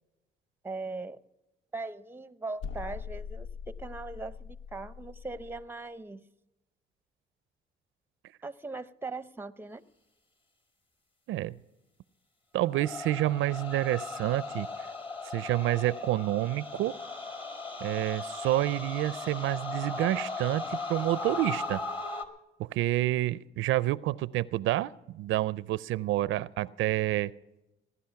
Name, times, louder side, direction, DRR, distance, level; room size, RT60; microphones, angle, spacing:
voice 1, 0.6-1.2 1.7-6.2 8.4-9.8, right 3 dB, 10° right, 15 dB, 0.6 m, -40 dB
sound 1, 2.6-5.7, left 6 dB, 85° left, 0.7 m, -42 dB
voice 2, 12.5-14.7 15.3-17.0 17.8-21.8 22.6-27.3, right 15 dB, 80° right, 19 dB, 0.4 m, -28 dB
sound 2, 12.7-22.2, left 3 dB, 25° left, 1.7 m, -37 dB
18.0 x 11.0 x 5.8 m, 0.96 s
cardioid pair, 90°, 20 cm